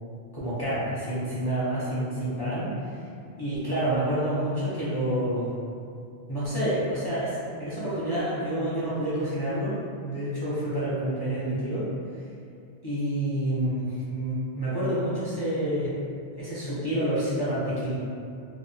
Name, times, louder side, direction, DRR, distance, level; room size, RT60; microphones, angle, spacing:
voice 1, 0.3-2.7 3.4-5.5 6.3-11.9 12.8-15.9 16.3-18.0, right 1 dB, 35° left, -11 dB, 0.4 m, -28 dB
2.7 x 2.1 x 2.5 m, 2.4 s
omnidirectional pair, 1.1 m